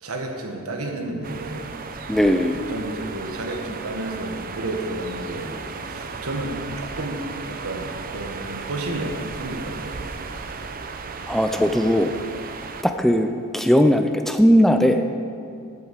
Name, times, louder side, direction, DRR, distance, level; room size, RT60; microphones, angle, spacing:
voice 1, 0.0-1.7 2.7-10.0, right 1 dB, 70° right, 3 dB, 1.4 m, -31 dB
sound 1, 1.2-12.8, right 4 dB, 40° right, 0.6 m, -35 dB
voice 2, 2.1-2.6 11.3-12.1 12.8-15.1, equal, ahead, 6 dB, 0.3 m, -18 dB
8.2 x 7.9 x 7.3 m, 2.3 s
head